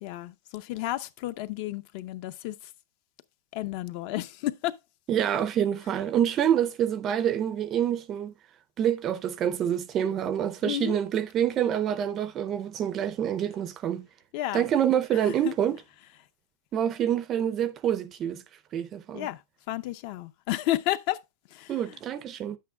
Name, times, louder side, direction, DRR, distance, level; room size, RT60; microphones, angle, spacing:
voice 1, 0.0-2.7 3.5-4.8 10.6-11.0 14.3-14.7 15.1-15.5 19.1-19.4 19.7-21.2 21.5-22.0, left 15 dB, 40° left, 0.5 m, -32 dB
voice 2, 5.1-8.3 8.8-14.1 14.5-15.8 16.7-18.4 18.7-19.3 21.7-22.6, right 9 dB, 20° right, 0.5 m, -27 dB
10.5 x 8.4 x 2.2 m
supercardioid pair, 175°, 0 cm